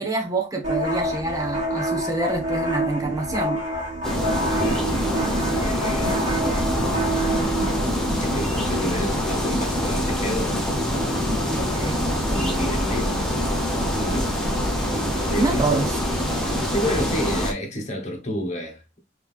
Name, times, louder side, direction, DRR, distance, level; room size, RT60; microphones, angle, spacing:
voice 1, 0.0-3.6 11.5-12.1 15.4-16.0, right 2 dB, 20° right, 1.1 m, -26 dB
sound 1, 0.6-7.8, right 1 dB, 40° right, 1.9 m, -27 dB
sound 2, 4.0-17.5, equal, 5° left, 0.9 m, -24 dB
voice 2, 4.5-5.0 5.6-6.6 8.1-10.6 12.3-13.4 13.9-14.4 14.9-15.8 16.3-18.8, equal, 40° left, 1.2 m, -30 dB
3.7 x 3.2 x 3.4 m
head